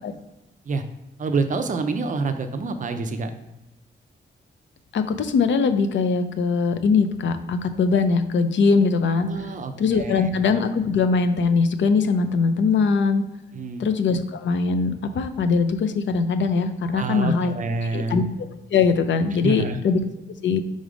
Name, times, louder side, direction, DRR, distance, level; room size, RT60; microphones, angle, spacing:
voice 1, 1.2-3.3 9.1-10.3 13.5-13.9 16.9-18.3 19.4-19.8, right 4 dB, 45° right, 8 dB, 0.5 m, -27 dB
voice 2, 4.9-9.3 9.8-13.2 13.8-17.5 17.9-18.2 18.7-20.0 20.4-20.6, left 5 dB, 80° left, 9 dB, 0.6 m, -21 dB
5.1 x 3.9 x 5.0 m, 0.99 s
wide cardioid pair, 175°, 19 cm